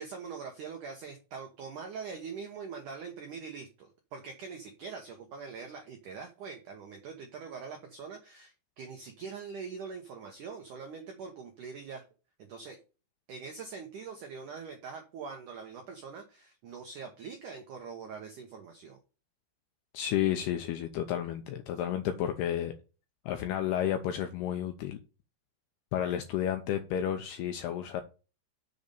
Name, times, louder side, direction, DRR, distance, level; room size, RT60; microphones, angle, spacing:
voice 1, 0.0-12.0 12.4-12.8 13.3-19.0, right 5 dB, 80° right, 1.8 m, -43 dB
voice 2, 19.9-22.7 23.3-25.0 25.9-28.0, left 10 dB, 80° left, 2.3 m, -31 dB
6.9 x 5.3 x 7.0 m
omnidirectional pair, 5.4 m